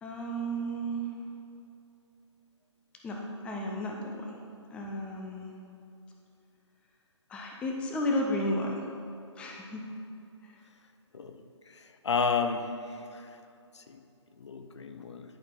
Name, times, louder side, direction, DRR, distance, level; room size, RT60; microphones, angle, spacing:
voice 1, 0.0-1.0 3.0-4.4 4.7-5.5 7.3-8.8 9.4-9.9 10.4-10.5, equal, 5° left, 0 dB, 0.5 m, -33 dB
voice 2, 11.8-12.7 13.1-13.3 13.8-14.0 14.4-15.2, left 5 dB, 65° left, 7 dB, 0.6 m, -31 dB
10.5 x 4.2 x 3.7 m, 2.7 s
figure-of-eight pair, 140°, 16 cm